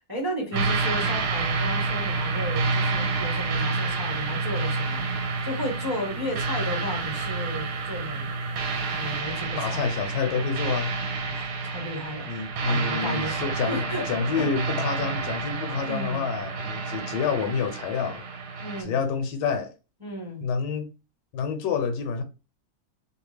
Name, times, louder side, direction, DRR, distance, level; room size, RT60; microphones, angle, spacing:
voice 1, 0.1-5.1 5.4-8.3 8.9-9.8 11.3-12.3 12.6-14.1 14.3-14.5 15.5-16.2 18.6-19.0 20.0-20.4, equal, 15° right, 0.8 m, -34 dB
sound 1, 0.5-18.8, right 4 dB, 70° right, 1.1 m, -29 dB
voice 2, 9.6-10.9 12.3-18.3 18.8-19.7 20.4-20.9 21.3-22.2, left 5 dB, 80° left, 1.2 m, -28 dB
2.8 x 2.3 x 3.2 m
omnidirectional pair, 1.9 m